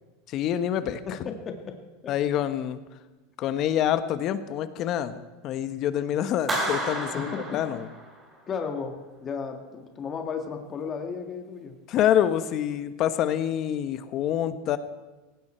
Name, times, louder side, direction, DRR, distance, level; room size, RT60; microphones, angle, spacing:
voice 1, 0.3-1.2 2.1-2.8 3.4-7.9 11.9-14.8, left 10 dB, 40° left, 11 dB, 1.2 m, -26 dB
voice 2, 1.1-1.8 2.0-2.1 7.1-7.6 8.5-11.8, left 5 dB, 25° left, 4 dB, 1.8 m, -34 dB
Clapping, 6.5-8.4, right 1 dB, 20° right, 3.9 m, -31 dB
18.5 x 16.5 x 4.5 m, 1.2 s
supercardioid pair, 140°, 0 cm